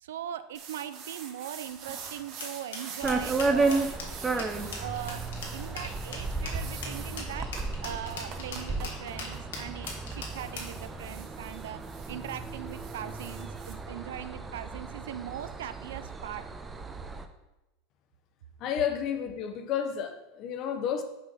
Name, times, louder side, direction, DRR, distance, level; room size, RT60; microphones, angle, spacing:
voice 1, 0.0-3.9 4.3-4.5 4.8-5.2 5.5-7.5 7.8-11.8 12.1-16.4, right 10 dB, 75° right, 0.4 m, -40 dB
sound 1, 0.5-13.7, right 6 dB, 50° right, 1.1 m, -46 dB
sound 2, 2.4-10.8, left 4 dB, 80° left, 1.5 m, -40 dB
sound 3, 3.0-17.3, right 3 dB, 20° right, 0.6 m, -34 dB
voice 2, 18.6-21.0, left 8 dB, 50° left, 0.9 m, -31 dB
6.5 x 4.1 x 5.7 m
hypercardioid pair, 90°, 0 cm